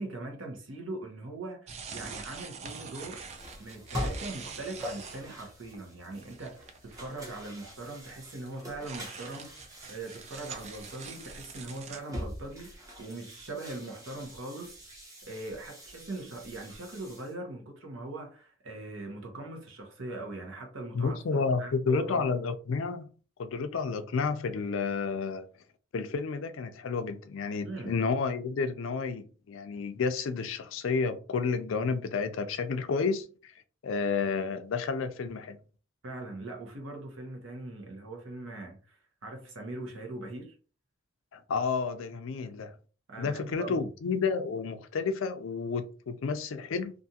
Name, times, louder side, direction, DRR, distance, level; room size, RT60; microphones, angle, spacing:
voice 1, 0.0-3.2 3.6-9.5 9.9-14.8 15.2-22.3 27.6-28.0 36.0-40.5 43.1-43.9, right 2 dB, 70° right, 0.9 m, -41 dB
sound 1, 1.7-5.5 5.7-5.8 6.1-7.2 7.5-12.0, right 5 dB, 30° right, 0.3 m, -45 dB
sound 2, 2.6-17.3, equal, 15° right, 0.8 m, -44 dB
voice 2, 20.9-23.1 23.4-25.5 25.9-33.5 33.8-35.6 41.3-42.7 43.2-46.9, left 5 dB, 70° left, 0.4 m, -31 dB
2.5 x 2.4 x 2.7 m
head